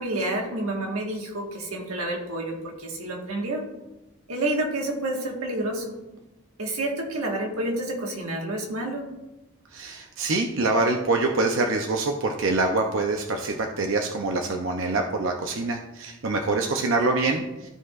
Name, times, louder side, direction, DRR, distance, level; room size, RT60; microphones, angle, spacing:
voice 1, 0.0-3.6 4.3-6.0 6.6-9.1, right 1 dB, 85° right, 0 dB, 1.5 m, -29 dB
voice 2, 9.7-17.4, right 3 dB, 65° right, 3 dB, 0.6 m, -25 dB
13.5 x 4.6 x 2.4 m, 1.0 s
head